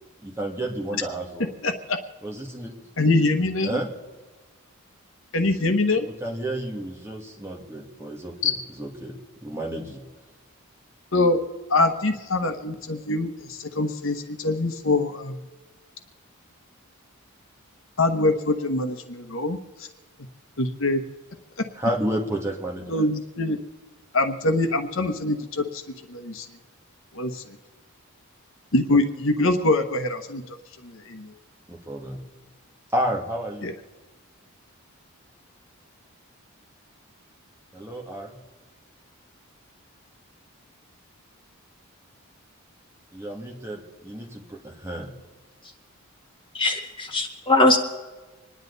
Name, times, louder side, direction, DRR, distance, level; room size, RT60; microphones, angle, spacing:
voice 1, 0.2-1.5 2.2-2.7 3.6-3.9 6.1-8.5 8.8-9.2 9.4-10.0 21.8-23.1 28.9-29.0 31.7-32.2 32.9-33.7 37.7-38.4 43.1-45.1, right 1 dB, 10° right, 0 dB, 2.1 m, -31 dB
voice 2, 1.6-2.0 3.0-3.8 5.3-6.1 8.4-8.5 11.1-11.4 11.7-15.4 18.0-19.9 20.6-21.0 22.9-23.6 24.1-25.8 26.1-26.5 27.1-27.6 28.7-30.6 30.8-31.3 33.6-33.7, left 2 dB, 60° left, 6 dB, 1.1 m, -24 dB
voice 3, 46.5-47.8, left 2 dB, 20° left, 2 dB, 1.8 m, -20 dB
26.5 x 10.5 x 4.0 m, 1.2 s
head